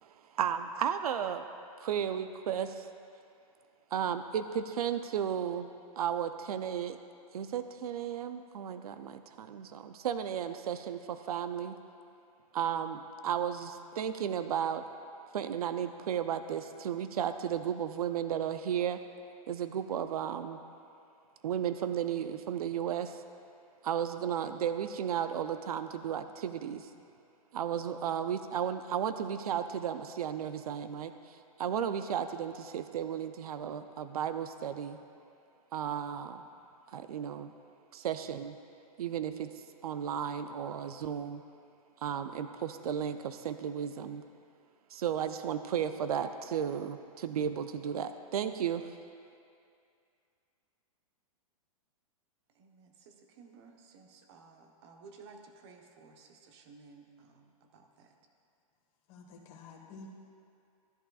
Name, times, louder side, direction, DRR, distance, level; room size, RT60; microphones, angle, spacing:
voice 1, 0.0-1.5 1.8-2.9 3.9-5.7 6.0-7.0 7.3-11.8 12.5-14.8 15.3-19.0 19.5-20.6 21.4-23.2 23.8-26.9 27.5-35.0 35.7-36.4 36.9-37.5 37.9-38.6 39.0-39.5 39.8-41.4 42.0-44.2 44.9-48.9, right 9 dB, 85° right, 10 dB, 0.5 m, -34 dB
voice 2, 52.5-58.1, right 4 dB, 45° right, 3 dB, 1.1 m, -56 dB
voice 3, 59.1-60.1, left 4 dB, 35° left, -1 dB, 1.6 m, -50 dB
13.0 x 11.5 x 2.4 m, 2.5 s
hypercardioid pair, 145°, 19 cm